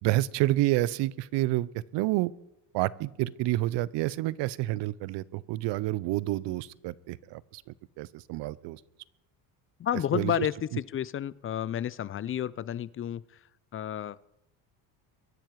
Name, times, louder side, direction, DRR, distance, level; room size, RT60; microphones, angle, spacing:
voice 1, 0.0-2.3 2.7-7.6 8.0-8.8 10.1-10.5, right 17 dB, 60° right, 21 dB, 0.8 m, -29 dB
voice 2, 9.8-13.2 13.7-14.2, left 10 dB, 30° left, 21 dB, 0.5 m, -31 dB
23.0 x 10.5 x 4.7 m, 0.91 s
supercardioid pair, 95°, 48 cm